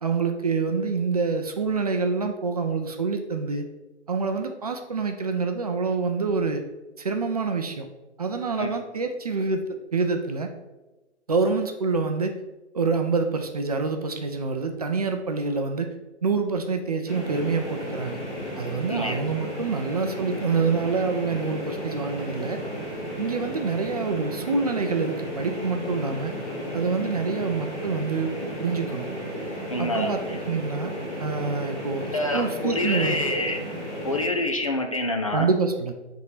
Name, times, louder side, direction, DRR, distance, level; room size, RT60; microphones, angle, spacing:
voice 1, 0.0-3.6 4.1-6.6 7.0-7.9 8.2-10.5 11.3-12.3 12.7-15.9 16.2-18.2 18.6-22.6 23.2-26.4 26.7-29.1 29.8-30.9 31.2-33.3 35.3-35.9, right 4 dB, 35° right, 5 dB, 0.5 m, -26 dB
sound 1, 17.1-34.2, equal, 15° left, 1.7 m, -34 dB
voice 2, 18.9-19.2 29.7-30.4 32.1-33.6 34.0-35.5, left 1 dB, 30° left, 3 dB, 0.4 m, -27 dB
8.2 x 3.7 x 4.0 m, 1.1 s
figure-of-eight pair, 135°, 36 cm